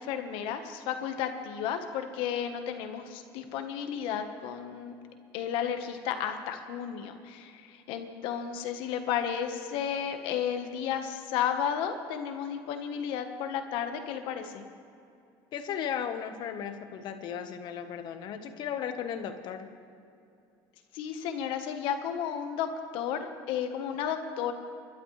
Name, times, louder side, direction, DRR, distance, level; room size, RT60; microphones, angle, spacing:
voice 1, 0.0-4.9 5.3-14.6 20.9-22.7 22.9-23.2 23.5-24.5, left 8 dB, 75° left, 6 dB, 1.3 m, -33 dB
voice 2, 15.5-19.7, left 8 dB, 55° left, 8 dB, 1.2 m, -35 dB
26.5 x 12.0 x 3.3 m, 2.5 s
cardioid pair, 135°, 9 cm